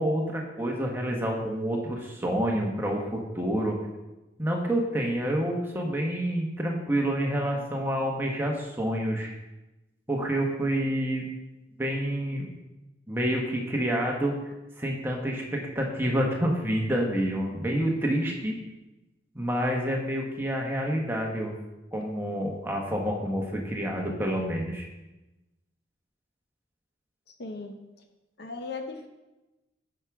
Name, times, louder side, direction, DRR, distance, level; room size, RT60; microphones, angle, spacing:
voice 1, 0.0-3.8 4.4-9.3 10.1-11.3 11.8-12.5 13.1-14.3 14.8-18.5 19.3-21.5 21.9-24.9, equal, 10° right, 0 dB, 1.1 m, -28 dB
voice 2, 27.4-27.8 28.4-29.1, left 3 dB, 55° left, 5 dB, 0.7 m, -37 dB
9.3 x 6.0 x 3.6 m, 1.0 s
head